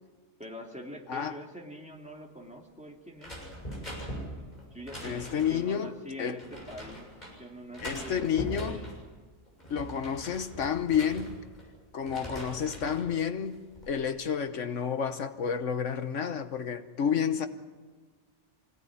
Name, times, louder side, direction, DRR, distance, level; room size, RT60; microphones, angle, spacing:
voice 1, 0.4-3.3 4.7-7.1 7.4-8.3 8.6-8.9, equal, 5° right, 2.9 m, -44 dB
sound 1, 3.2-5.7 6.4-7.3 7.7-9.0 9.5-11.7 12.0-13.1 13.5-13.9, right 1 dB, 35° left, 7.2 m, -41 dB
voice 2, 5.0-6.4 7.8-8.8 9.7-11.4 11.9-13.6 13.9-17.5, left 7 dB, 75° left, 1.4 m, -30 dB
25.0 x 17.5 x 9.7 m
omnidirectional pair, 1.3 m